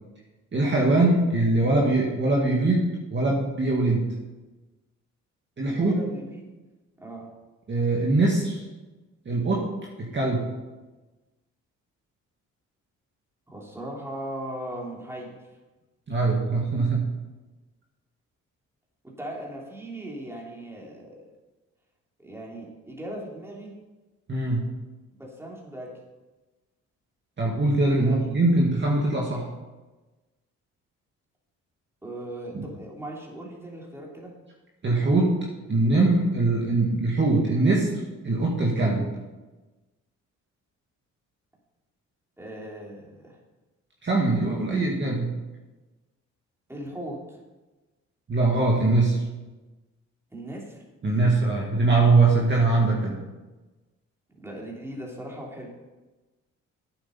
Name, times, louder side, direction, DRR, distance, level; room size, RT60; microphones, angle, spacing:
voice 1, 0.5-4.1 5.6-6.0 7.7-8.7 9.3-9.7 10.0-10.5 16.1-17.1 24.3-24.6 27.4-29.5 32.5-32.7 34.8-39.1 44.0-45.3 48.3-49.2 51.0-53.2, right 2 dB, 40° right, -2 dB, 2.1 m, -22 dB
voice 2, 5.6-6.5 7.0-7.3 13.5-15.3 19.2-21.2 22.2-23.7 25.1-25.9 28.0-28.3 32.0-34.3 42.4-43.4 46.7-47.4 50.3-50.8 54.3-55.7, right 1 dB, 10° right, -3 dB, 3.3 m, -38 dB
9.0 x 8.0 x 5.5 m, 1.2 s
cardioid pair, 90°, 30 cm